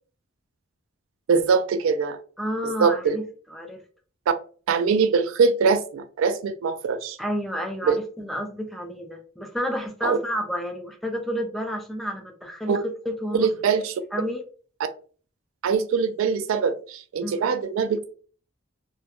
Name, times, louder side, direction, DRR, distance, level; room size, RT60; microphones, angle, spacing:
voice 1, 1.3-2.2 2.6-3.2 4.3-4.4 4.7-7.2 7.8-8.0 10.0-10.2 12.7-12.8 13.3-13.9 15.6-18.1, right 5 dB, 85° right, 11 dB, 0.3 m, -22 dB
voice 2, 2.4-3.2 3.5-3.8 7.2-13.8 14.1-14.4 17.2-17.5, equal, ahead, 3 dB, 0.3 m, -30 dB
2.3 x 2.1 x 2.8 m, 0.41 s
head